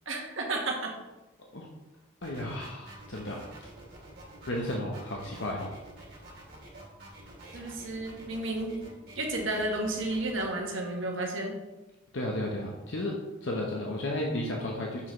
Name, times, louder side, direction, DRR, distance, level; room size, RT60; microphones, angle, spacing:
voice 1, 0.1-0.9 7.5-8.8 9.1-11.6, right 2 dB, 70° right, 1 dB, 1.3 m, -32 dB
voice 2, 2.2-3.4 4.5-5.7 12.1-13.1 13.4-15.1, left 1 dB, 60° left, -1 dB, 0.8 m, -33 dB
sound 1, 2.2-10.4, right 1 dB, 50° right, 2.2 m, -49 dB
7.1 x 6.3 x 3.1 m, 1.1 s
head